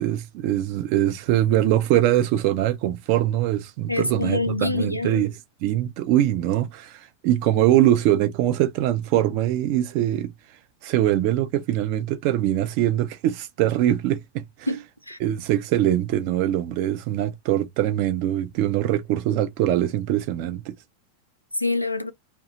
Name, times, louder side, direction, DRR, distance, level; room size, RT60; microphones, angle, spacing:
voice 1, 0.0-10.3 10.8-14.7 15.2-20.7, right 13 dB, 45° right, 0.5 m, -23 dB
voice 2, 3.9-5.2 14.7-15.2 21.6-22.1, left 3 dB, 90° left, 0.4 m, -26 dB
2.7 x 2.1 x 2.7 m
figure-of-eight pair, 90°, 0 cm